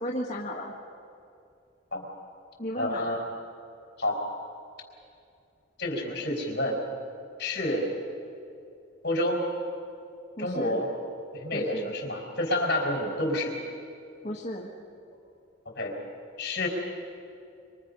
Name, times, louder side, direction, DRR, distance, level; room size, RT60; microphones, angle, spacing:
voice 1, 0.0-0.7 2.6-3.1 10.4-10.8 11.5-11.9 14.2-14.7, equal, 40° left, -3 dB, 1.9 m, -34 dB
voice 2, 2.8-3.2 4.0-4.2 5.8-6.8 7.4-7.8 9.0-9.4 10.4-10.9 11.3-13.5 15.7-15.9 16.4-16.7, left 1 dB, 60° left, 1 dB, 4.9 m, -28 dB
26.5 x 25.5 x 5.5 m, 2.5 s
head